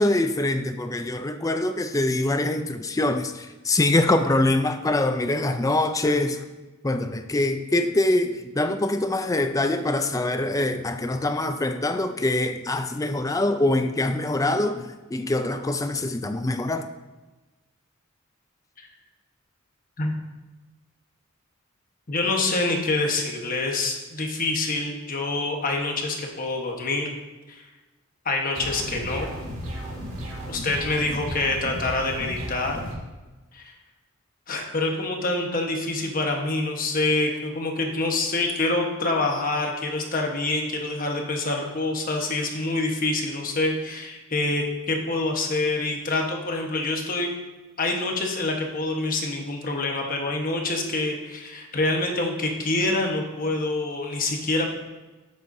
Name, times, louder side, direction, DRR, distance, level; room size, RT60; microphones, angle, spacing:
voice 1, 0.0-6.4 6.8-16.9, left 2 dB, 15° left, 8 dB, 0.4 m, -24 dB
voice 2, 22.1-27.1 27.5-27.6 28.2-29.3 30.5-32.8 33.5-33.7 34.5-47.3 47.8-54.7, left 2 dB, 40° left, 1 dB, 1.2 m, -26 dB
sound 1, 28.5-32.9, equal, 65° right, 2.4 m, -34 dB
11.0 x 7.9 x 2.7 m, 1.2 s
head